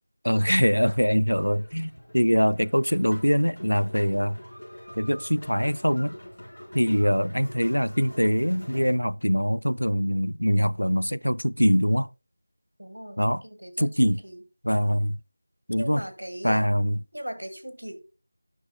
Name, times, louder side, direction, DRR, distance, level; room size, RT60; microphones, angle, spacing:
voice 1, 0.2-4.4 5.0-6.1 6.7-12.1 13.2-13.4 13.8-14.2 14.6-15.2 15.7-16.0 16.4-17.0, equal, 85° left, 0.3 m, -23 dB
sound 1, 0.9-8.9, equal, 60° left, 4.2 m, -45 dB
voice 2, 12.8-14.4 15.8-16.7 17.1-18.0, equal, 75° right, 1.6 m, -38 dB
10.0 x 6.2 x 2.2 m
figure-of-eight pair, 170°, 0 cm